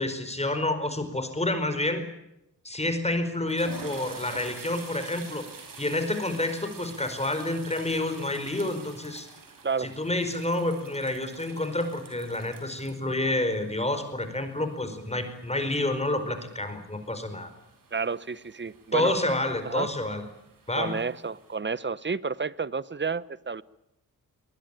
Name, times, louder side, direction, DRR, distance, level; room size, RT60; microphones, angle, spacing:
voice 1, 0.0-2.1 2.6-5.4 5.8-9.3 9.8-17.5 18.9-20.2 20.7-21.0, left 1 dB, 20° left, 8 dB, 4.7 m, -29 dB
sound 1, 2.7-2.9 3.3-21.6, right 4 dB, 65° right, 5.8 m, -48 dB
voice 2, 9.6-9.9 17.9-19.1 19.6-19.9 20.8-23.6, right 5 dB, 30° right, 19 dB, 0.9 m, -30 dB
24.0 x 19.5 x 8.9 m, 0.85 s
cardioid pair, 65°, 35 cm